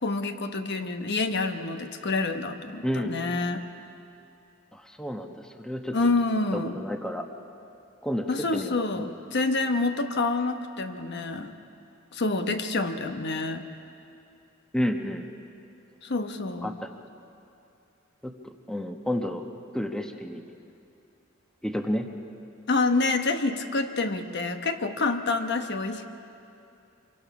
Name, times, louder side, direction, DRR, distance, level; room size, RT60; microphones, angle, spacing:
voice 1, 0.0-3.6 5.9-6.8 8.3-11.6 12.1-13.7 16.0-16.7 22.7-26.1, left 3 dB, 55° left, 7 dB, 1.1 m, -27 dB
voice 2, 2.8-3.1 4.7-6.0 6.5-7.3 8.0-9.1 14.7-15.3 16.6-16.9 18.2-19.5 19.7-20.4 21.6-22.1, equal, 5° left, 4 dB, 1.0 m, -31 dB
26.0 x 23.5 x 6.0 m, 2.7 s
head